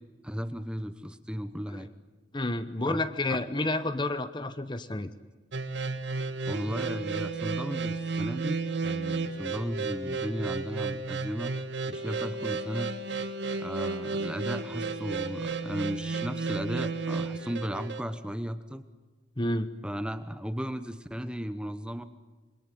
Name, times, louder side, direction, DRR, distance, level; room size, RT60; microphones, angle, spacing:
voice 1, 0.2-1.9 2.9-3.0 3.3-3.4 6.5-11.5 11.9-12.9 13.6-18.8 19.8-22.0, equal, 5° right, 10 dB, 1.0 m, -35 dB
voice 2, 2.3-5.1 19.4-19.7, left 2 dB, 25° left, 11 dB, 0.9 m, -30 dB
sound 1, 5.5-18.0, right 4 dB, 65° right, 1.7 m, -33 dB
27.0 x 22.5 x 9.2 m, 1.3 s
head